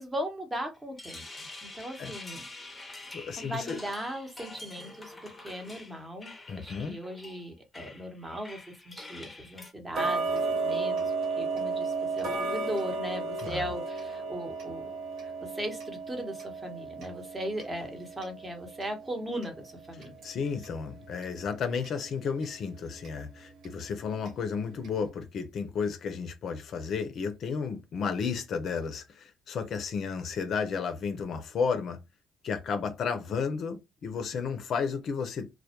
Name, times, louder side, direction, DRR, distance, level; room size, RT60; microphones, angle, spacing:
voice 1, 0.0-2.5 3.4-14.9 15.2-20.2, equal, 20° right, 0.9 m, -38 dB
sound 1, 0.7-9.7, left 2 dB, 15° left, 0.7 m, -46 dB
voice 2, 3.1-3.8 6.5-7.0 13.4-13.6 20.2-32.0 32.4-35.5, left 5 dB, 60° left, 0.5 m, -33 dB
Tick-tock, 9.9-20.8 21.2-21.3 21.8-21.9 22.4-22.5 23.0-23.1 23.6-23.7 24.3-24.4 24.8-24.9, right 3 dB, 65° right, 0.9 m, -34 dB
2.1 x 2.1 x 2.8 m
supercardioid pair, 70°, 0 cm